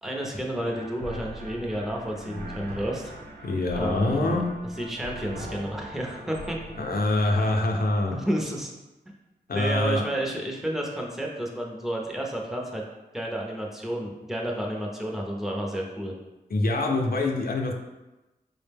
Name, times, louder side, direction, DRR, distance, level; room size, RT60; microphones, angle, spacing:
voice 1, 0.0-3.1 3.7-4.4 4.8-6.6 7.7-7.8 8.1-8.7 9.5-12.8 13.1-16.1, right 1 dB, ahead, -1 dB, 0.6 m, -31 dB
sound 1, 0.6-7.6, right 1 dB, 80° right, 0.7 m, -41 dB
voice 2, 3.4-4.5 6.8-8.2 9.5-10.0 16.5-17.7, left 2 dB, 60° left, 1 dB, 0.5 m, -25 dB
4.8 x 2.1 x 3.3 m, 1.0 s
wide cardioid pair, 80°, 17 cm